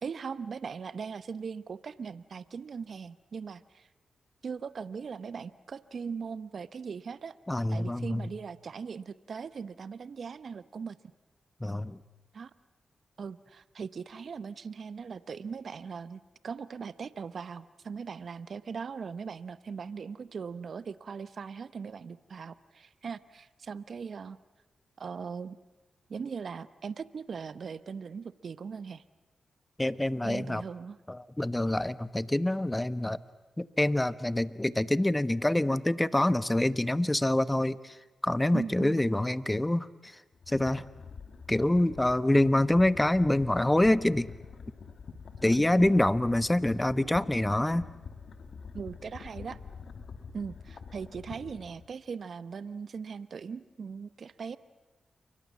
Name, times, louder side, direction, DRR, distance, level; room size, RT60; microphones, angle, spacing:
voice 1, 0.0-3.9 4.4-7.3 7.7-11.0 12.3-12.5 13.2-24.4 25.0-25.6 26.1-29.0 30.2-31.0 38.5-39.0 45.4-45.9 48.7-49.6 50.3-54.6, right 6 dB, 65° right, 16 dB, 0.9 m, -39 dB
voice 2, 7.5-8.3 11.6-12.0 29.8-30.6 31.1-33.2 33.6-37.9 38.2-39.9 40.5-40.8 41.5-44.3 45.4-47.9, left 1 dB, 15° left, 16 dB, 1.2 m, -26 dB
sound 1, 40.3-51.9, left 5 dB, 70° left, 2.5 m, -46 dB
29.0 x 24.0 x 7.3 m, 1.1 s
supercardioid pair, 45°, 0 cm